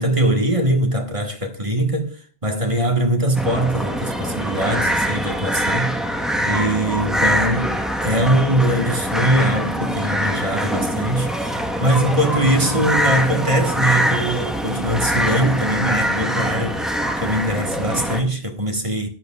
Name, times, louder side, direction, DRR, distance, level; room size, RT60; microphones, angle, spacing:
voice 1, 0.0-2.1 2.4-6.0 6.4-19.1, right 1 dB, 25° right, 1.6 m, -21 dB
sound 1, 3.3-18.2, equal, ahead, 1.2 m, -23 dB
14.0 x 11.0 x 2.4 m
omnidirectional pair, 1.2 m